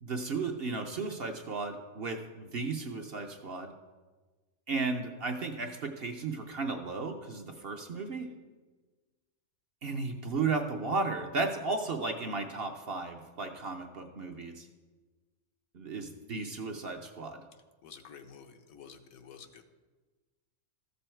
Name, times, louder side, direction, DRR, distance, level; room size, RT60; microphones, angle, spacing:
voice 1, 0.0-3.7 4.7-8.3 9.8-14.7 15.7-17.4, right 4 dB, 50° right, 4 dB, 0.8 m, -34 dB
voice 2, 17.8-19.6, left 6 dB, 75° left, 6 dB, 1.2 m, -50 dB
13.5 x 6.9 x 4.4 m, 1.3 s
omnidirectional pair, 1.5 m